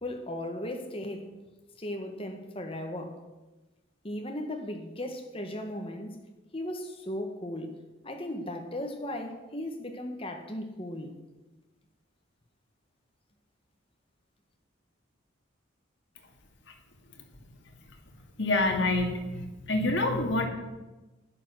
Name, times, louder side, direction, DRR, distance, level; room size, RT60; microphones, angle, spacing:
voice 1, 0.0-1.3 1.8-3.2 4.0-6.2 6.5-7.7 8.0-11.1, left 1 dB, 25° left, 4 dB, 1.6 m, -36 dB
voice 2, 18.4-20.5, left 2 dB, 60° left, 2 dB, 2.3 m, -27 dB
11.5 x 10.0 x 6.4 m, 1.1 s
head